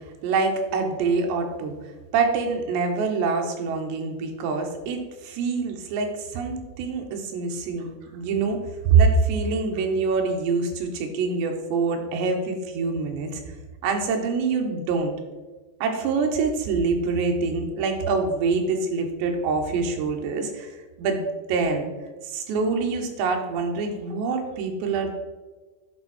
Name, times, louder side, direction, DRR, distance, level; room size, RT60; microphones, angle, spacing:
voice 1, 0.2-1.8 2.1-8.6 8.8-13.4 13.8-15.1 15.8-20.7 21.0-21.2 21.5-21.9 22.3-25.1, right 4 dB, 75° right, 3 dB, 3.2 m, -25 dB
11.0 x 5.2 x 4.3 m, 1.2 s
omnidirectional pair, 5.2 m